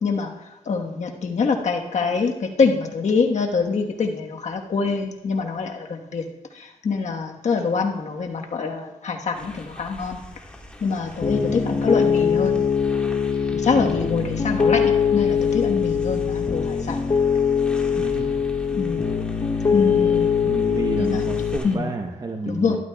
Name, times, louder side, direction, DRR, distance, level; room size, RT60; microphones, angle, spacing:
voice 1, 0.0-10.2 10.8-12.6 13.5-17.0 18.7-19.1 19.7-20.5 21.0-21.9 22.5-22.8, left 4 dB, 60° left, 2 dB, 1.3 m, -25 dB
sound 1, 9.3-21.8, equal, 10° left, 1.7 m, -44 dB
Piano, 11.2-21.6, left 6 dB, 35° left, 0.9 m, -22 dB
voice 2, 13.5-13.8 17.9-18.3 20.5-22.8, right 3 dB, 30° right, 2 dB, 0.9 m, -30 dB
12.5 x 11.5 x 2.3 m, 1.0 s
cardioid pair, 75°, 13 cm